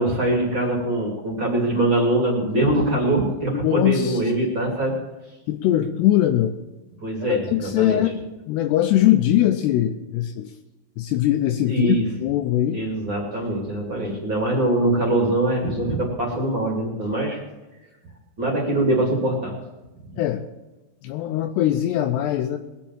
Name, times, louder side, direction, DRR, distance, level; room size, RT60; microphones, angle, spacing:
voice 1, 0.0-4.9 7.0-8.0 11.7-12.0 12.7-17.4 18.4-19.5 20.1-20.2, right 1 dB, 35° right, -2 dB, 2.5 m, -23 dB
voice 2, 3.5-4.2 5.5-6.6 7.3-10.5 11.0-12.0 12.2-12.8 20.2-20.4 21.0-22.6, left 12 dB, 80° left, 7 dB, 2.5 m, -21 dB
20.5 x 7.2 x 7.3 m, 1.0 s
omnidirectional pair, 5.3 m